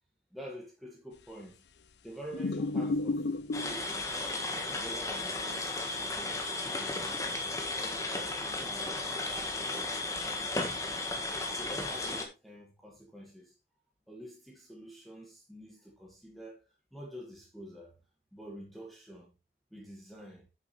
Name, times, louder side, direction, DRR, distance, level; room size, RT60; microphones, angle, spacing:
voice 1, 0.3-1.6 2.0-4.3 4.8-11.1 11.6-13.6 14.1-18.0 18.3-19.3 19.7-20.5, right 1 dB, ahead, 1.8 m, -48 dB
sound 1, 2.3-3.9 6.0-6.1, left 2 dB, 80° left, 0.6 m, -32 dB
sound 2, 3.5-12.3, left 2 dB, 20° left, 1.5 m, -35 dB
9.9 x 7.3 x 3.3 m
head